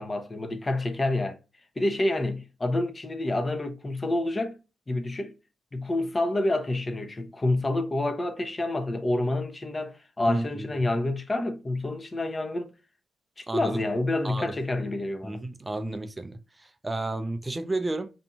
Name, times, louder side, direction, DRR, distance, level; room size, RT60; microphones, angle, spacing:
voice 1, 0.0-1.4 1.8-4.6 4.9-5.3 5.7-12.7 13.4-15.4, left 2 dB, 30° left, 0.6 m, -28 dB
voice 2, 10.3-10.8 13.5-13.8 14.2-14.5 15.2-18.1, right 2 dB, 25° right, 0.4 m, -32 dB
2.6 x 2.6 x 2.2 m
supercardioid pair, 50°, 0 cm